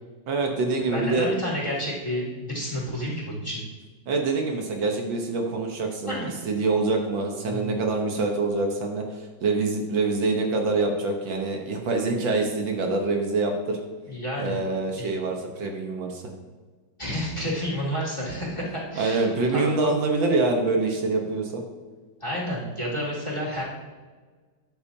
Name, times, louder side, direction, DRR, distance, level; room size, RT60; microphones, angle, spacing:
voice 1, 0.3-1.3 4.1-6.2 6.5-13.8 14.4-16.2 19.0-21.6, right 3 dB, 75° right, 2 dB, 1.8 m, -25 dB
voice 2, 0.9-3.6 6.1-6.3 7.5-7.7 14.1-14.6 15.0-15.1 17.0-19.9 22.2-23.6, equal, 15° left, -5 dB, 2.3 m, -30 dB
12.5 x 8.2 x 2.8 m, 1.4 s
omnidirectional pair, 2.1 m